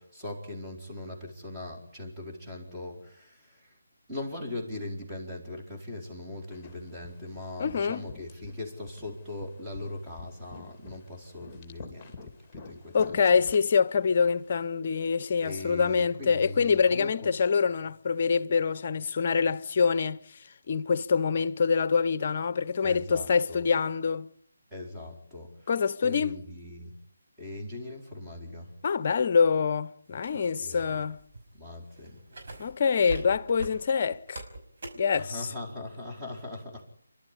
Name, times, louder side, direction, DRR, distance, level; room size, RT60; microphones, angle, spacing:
voice 1, 0.0-3.8 4.1-13.4 15.4-17.3 22.8-23.7 24.7-25.7 26.0-27.0 27.4-28.8 30.6-31.1 31.5-32.3 35.1-36.8, left 2 dB, 10° right, 4.4 m, -40 dB
sound 1, 6.5-14.7, left 4 dB, 15° left, 2.8 m, -49 dB
voice 2, 7.6-8.0 12.9-20.2 20.7-24.3 25.7-26.4 28.8-31.2 32.6-34.4 34.9-35.4, left 5 dB, 40° left, 0.8 m, -25 dB
sound 2, 30.1-35.2, right 2 dB, 50° right, 5.6 m, -42 dB
28.0 x 12.5 x 9.9 m
figure-of-eight pair, 160°, 0 cm